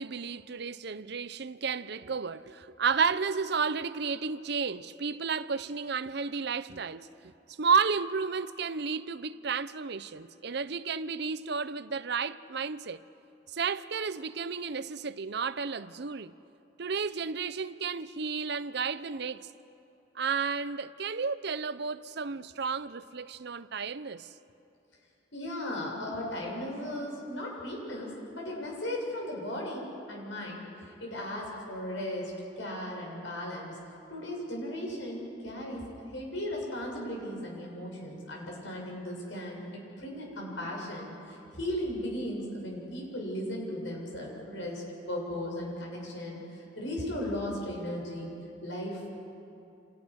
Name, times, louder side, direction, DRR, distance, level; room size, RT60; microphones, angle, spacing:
voice 1, 0.0-7.1 7.6-13.0 13.5-16.3 16.8-19.5 20.1-24.3, right 5 dB, 65° right, 0.7 m, -32 dB
voice 2, 25.3-32.3 32.6-33.8 34.1-35.8 36.1-48.3 48.6-49.1, left 1 dB, 80° left, 7.7 m, -36 dB
29.5 x 28.0 x 6.5 m
head